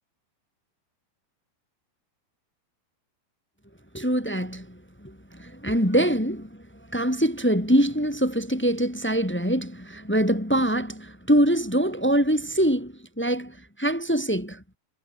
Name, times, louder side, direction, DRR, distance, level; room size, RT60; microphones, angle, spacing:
voice 1, 3.9-6.6 6.9-14.6, right 1 dB, 5° left, 1.0 m, -24 dB
omnidirectional pair, 4.6 m